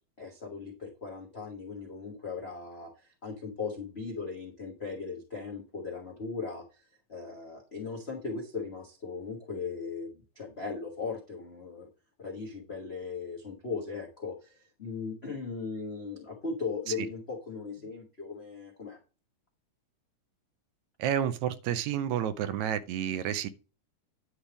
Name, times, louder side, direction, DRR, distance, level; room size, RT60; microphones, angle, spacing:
voice 1, 0.2-6.8 7.1-11.9 12.2-19.0, left 4 dB, 80° left, 0.5 m, -38 dB
voice 2, 21.0-23.5, right 10 dB, 80° right, 1.9 m, -30 dB
9.9 x 3.4 x 5.9 m
omnidirectional pair, 3.4 m